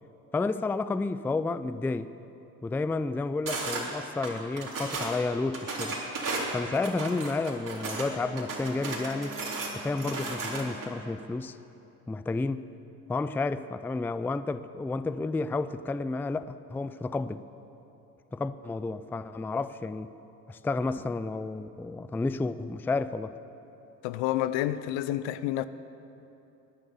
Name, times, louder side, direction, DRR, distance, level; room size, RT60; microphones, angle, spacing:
voice 1, 0.3-2.1 2.6-6.0 6.5-9.4 9.7-11.6 12.1-12.7 13.1-17.4 18.3-20.1 20.5-23.3, left 3 dB, 5° left, 0.4 m, -31 dB
sound 1, 3.5-3.8 4.2-5.2 5.5-8.1 8.4-10.9, right 3 dB, 45° right, 3.8 m, -34 dB
Wind instrument woodwind instrument, 7.6-11.4, right 1 dB, 15° right, 3.9 m, -46 dB
voice 2, 24.0-25.6, left 13 dB, 70° left, 0.8 m, -29 dB
21.0 x 9.8 x 7.0 m
hypercardioid pair, 65°, 45 cm